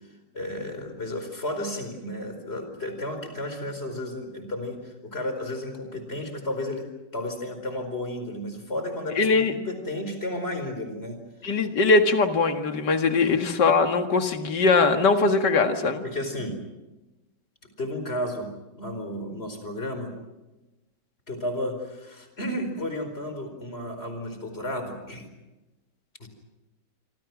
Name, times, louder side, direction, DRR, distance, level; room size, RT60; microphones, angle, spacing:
voice 1, 0.3-11.6 13.3-13.4 16.0-16.6 17.8-18.5 18.8-20.1 21.3-25.3 26.2-26.3, left 1 dB, 30° left, 6 dB, 4.9 m, -33 dB
voice 2, 9.2-9.5 11.4-16.0, left 3 dB, 65° left, 6 dB, 2.5 m, -21 dB
26.5 x 26.5 x 6.2 m, 1.0 s
omnidirectional pair, 2.0 m